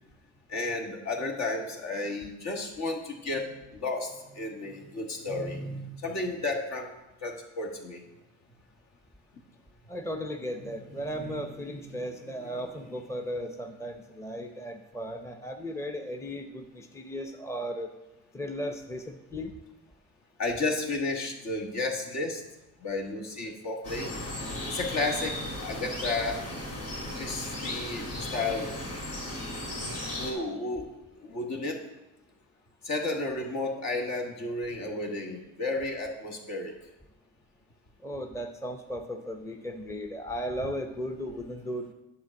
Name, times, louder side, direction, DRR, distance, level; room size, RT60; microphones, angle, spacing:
voice 1, 0.5-6.9 7.2-8.0 10.6-10.7 11.0-11.4 11.9-12.1 12.6-12.7 20.4-22.4 22.8-24.1 24.7-26.4 27.1-28.7 30.1-30.9 31.2-31.8 32.8-36.7, left 2 dB, 60° left, 2 dB, 1.6 m, -33 dB
voice 2, 9.9-17.9 18.3-19.5 38.0-41.9, equal, 10° left, 5 dB, 0.7 m, -36 dB
sound 1, 23.8-30.3, left 1 dB, 80° left, 3.1 m, -36 dB
9.4 x 3.8 x 7.0 m, 0.97 s
cardioid pair, 90°, 30 cm